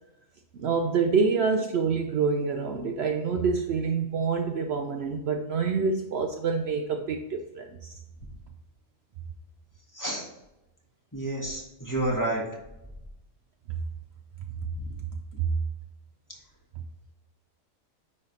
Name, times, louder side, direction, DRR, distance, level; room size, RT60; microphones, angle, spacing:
voice 1, 0.5-7.9 15.4-15.5, right 5 dB, 65° right, 5 dB, 0.7 m, -27 dB
voice 2, 11.1-12.4 14.8-14.9 15.3-15.4, right 1 dB, 15° left, -3 dB, 1.4 m, -30 dB
9.5 x 3.3 x 4.1 m, 0.91 s
omnidirectional pair, 1.3 m